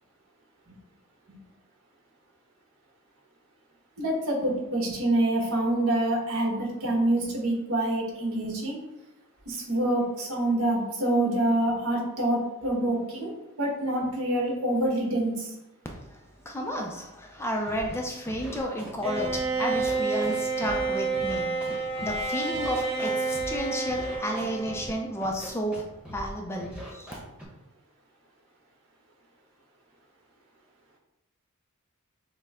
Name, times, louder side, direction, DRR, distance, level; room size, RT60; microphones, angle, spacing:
voice 1, 4.0-8.8 9.4-15.5, right 1 dB, 70° right, -2 dB, 1.4 m, -26 dB
voice 2, 16.5-25.8 26.1-27.1, equal, 10° left, 1 dB, 0.5 m, -32 dB
Scratching (performance technique), 17.6-18.0 18.2-19.4 19.7-20.8 21.1-22.2 22.5-23.6 23.9-24.9 25.2-25.8 26.0-26.3 26.6-27.4, equal, 5° right, 1.0 m, -41 dB
Bowed string instrument, 19.0-25.1, right 4 dB, 25° right, 0.7 m, -29 dB
6.5 x 2.2 x 3.6 m, 1.0 s
head